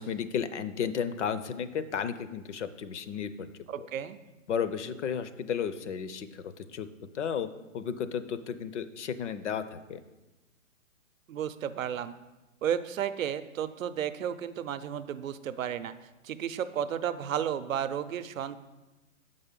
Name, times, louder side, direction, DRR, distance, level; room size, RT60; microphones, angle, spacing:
voice 1, 0.0-3.5 3.8-3.9 4.5-6.9 7.1-7.5 7.7-10.0, left 7 dB, 60° left, 11 dB, 0.6 m, -33 dB
voice 2, 3.7-4.2 11.3-12.1 12.6-15.9 16.2-18.6, right 9 dB, 75° right, 13 dB, 0.6 m, -33 dB
6.6 x 5.5 x 5.3 m, 1.1 s
hypercardioid pair, 155°, 40 cm